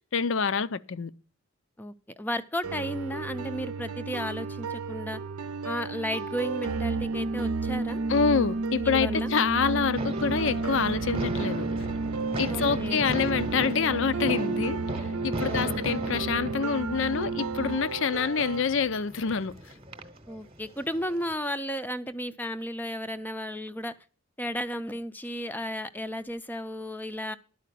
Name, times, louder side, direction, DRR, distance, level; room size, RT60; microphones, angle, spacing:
voice 1, 0.1-1.1 8.1-11.7 12.4-19.5, left 6 dB, 60° left, 0.5 m, -27 dB
voice 2, 1.8-5.2 5.6-8.0 8.8-9.3 12.5-13.0 15.5-15.9 20.3-23.9 24.4-27.4, equal, 10° left, 0.5 m, -34 dB
sound 1, 2.6-18.6, right 4 dB, 90° right, 0.7 m, -35 dB
sound 2, 6.6-17.8, right 3 dB, 45° right, 0.4 m, -32 dB
sound 3, 10.0-21.3, right 1 dB, 25° right, 0.9 m, -38 dB
12.0 x 4.9 x 8.4 m
head